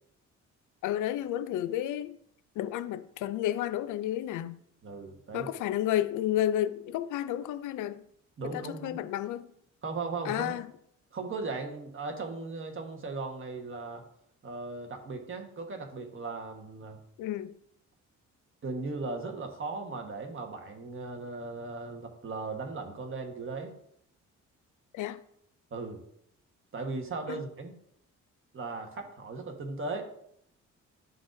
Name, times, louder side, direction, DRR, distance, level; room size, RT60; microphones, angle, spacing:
voice 1, 0.8-2.2 2.6-4.6 5.3-8.0 8.4-9.5 10.3-10.7 17.2-17.5 24.9-25.2 27.3-27.4, left 12 dB, 80° left, 0.5 m, -31 dB
voice 2, 4.8-5.5 8.4-9.0 9.8-10.6 11.1-14.0 14.4-17.0 18.6-23.8 25.7-26.0 26.7-27.8 28.5-30.1, right 3 dB, 45° right, 1.3 m, -37 dB
11.0 x 3.9 x 2.6 m
cardioid pair, 90°, 30 cm